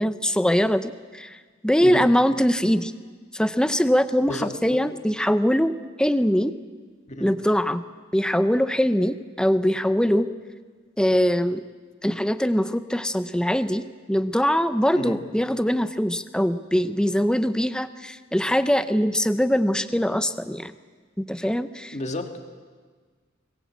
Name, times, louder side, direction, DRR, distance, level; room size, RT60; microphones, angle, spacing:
voice 1, 0.0-1.4 1.6-2.9 3.3-6.5 7.2-7.8 8.1-10.3 11.0-11.6 12.0-20.7 21.2-22.0, equal, 5° left, 11 dB, 0.7 m, -22 dB
voice 2, 4.3-4.8 7.1-7.3 14.9-15.2 21.9-22.5, left 1 dB, 35° left, 5 dB, 2.0 m, -32 dB
23.0 x 19.5 x 8.5 m, 1.5 s
head